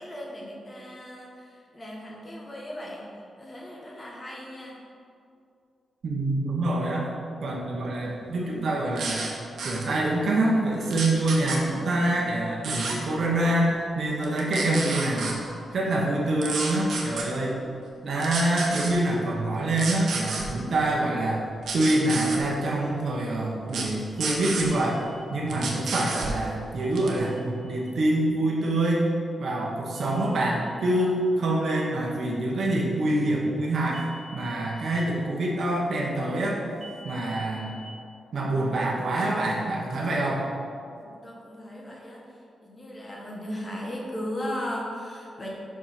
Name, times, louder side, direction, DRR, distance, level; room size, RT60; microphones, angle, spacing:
voice 1, 0.0-3.1 3.4-4.8 41.0-42.2 42.6-45.5, equal, 25° left, -3 dB, 1.2 m, -37 dB
voice 2, 6.0-7.1 7.4-9.3 9.6-15.3 15.7-17.6 18.0-21.4 21.7-25.0 25.3-29.1 29.4-34.0 34.3-36.7 37.0-37.7 38.3-40.5, right 1 dB, 50° right, -3 dB, 1.1 m, -26 dB
sound 1, 9.0-9.3 9.6-9.8 10.9-11.6 12.6-13.0 14.2-15.3 16.4-17.2 18.2-18.9 19.7-20.4 21.6-22.4 23.7-23.9 24.2-24.7 25.5-26.3 27.0-27.2, right 4 dB, 75° right, 1.0 m, -31 dB
sound 2, 24.1-25.3 26.8-27.9 30.0-31.0 33.9-35.0 36.8-37.9, equal, 35° right, 0.7 m, -49 dB
5.1 x 4.7 x 5.9 m, 2.4 s
wide cardioid pair, 155°, 0 cm